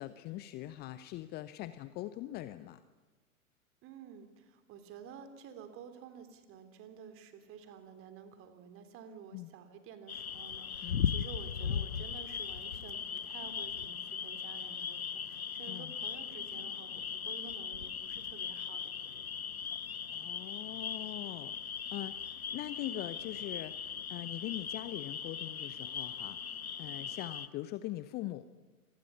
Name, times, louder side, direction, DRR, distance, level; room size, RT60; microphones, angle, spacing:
voice 1, 0.0-2.8 9.3-9.5 10.8-11.1 15.7-15.9 20.1-26.5 26.8-28.4, left 15 dB, 25° left, 14 dB, 0.8 m, -42 dB
voice 2, 3.8-19.5, right 7 dB, 30° right, 8 dB, 3.4 m, -51 dB
sound 1, 10.1-27.5, left 7 dB, 75° left, 1.0 m, -39 dB
27.0 x 20.0 x 9.8 m, 1.3 s
figure-of-eight pair, 100°, 43 cm